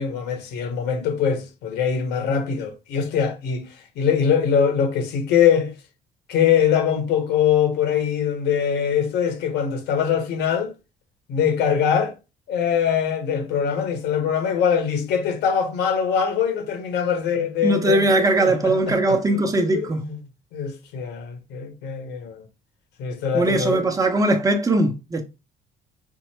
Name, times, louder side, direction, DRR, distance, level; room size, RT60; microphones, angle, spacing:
voice 1, 0.0-3.7 3.9-5.7 6.3-10.7 11.3-12.1 12.5-18.1 18.4-20.2 20.5-22.4 23.0-23.8, left 7 dB, 85° left, 1.5 m, -22 dB
voice 2, 17.6-20.0 23.3-25.2, right 2 dB, 20° right, 1.0 m, -20 dB
5.4 x 2.1 x 4.5 m
cardioid pair, 110°, 17 cm